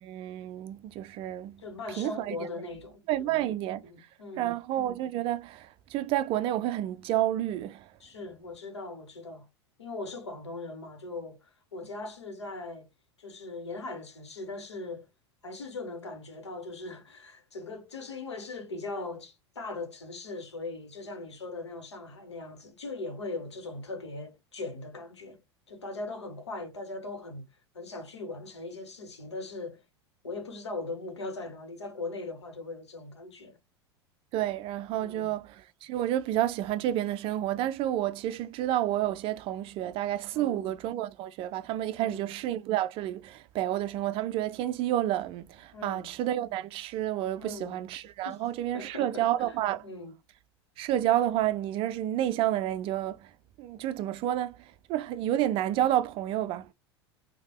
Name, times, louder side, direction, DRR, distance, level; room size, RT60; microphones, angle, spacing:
voice 1, 0.0-1.6 2.0-2.4 3.1-3.9 4.4-7.9 34.3-49.9 50.8-53.3 53.6-56.7, right 12 dB, 40° right, 0.3 m, -30 dB
voice 2, 1.6-3.4 3.8-4.5 8.0-9.5 9.8-12.9 13.2-15.1 15.4-29.8 30.2-33.6 35.0-35.3 40.3-40.7 41.9-42.3 45.7-46.1 47.4-47.8 48.2-48.4 48.7-49.6 49.8-50.1, left 3 dB, 85° left, 0.9 m, -40 dB
3.3 x 2.1 x 2.3 m
hypercardioid pair, 85°, 14 cm